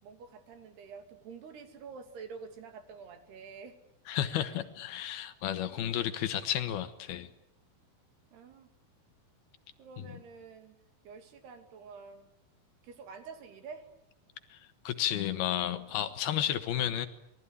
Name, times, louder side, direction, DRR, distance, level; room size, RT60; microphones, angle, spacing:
voice 1, 0.0-3.8 4.4-4.6 8.3-8.7 9.8-10.8 11.0-12.3 12.8-13.9, right 5 dB, 70° right, 7 dB, 4.5 m, -48 dB
voice 2, 4.1-7.3 14.5-17.1, left 11 dB, 70° left, 11 dB, 2.8 m, -32 dB
27.0 x 20.5 x 9.9 m, 0.84 s
omnidirectional pair, 4.9 m